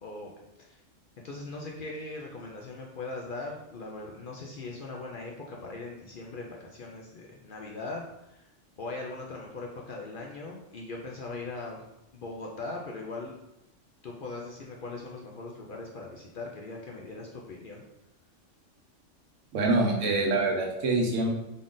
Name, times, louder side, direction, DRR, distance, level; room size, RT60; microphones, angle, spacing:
voice 1, 0.0-0.3 0.6-0.8 1.2-8.4 8.8-11.9 12.1-13.3 14.0-17.8, left 3 dB, 60° left, -1 dB, 0.6 m, -40 dB
voice 2, 19.5-21.3, right 2 dB, 80° right, 1 dB, 1.1 m, -25 dB
3.8 x 2.4 x 3.7 m, 0.92 s
omnidirectional pair, 1.3 m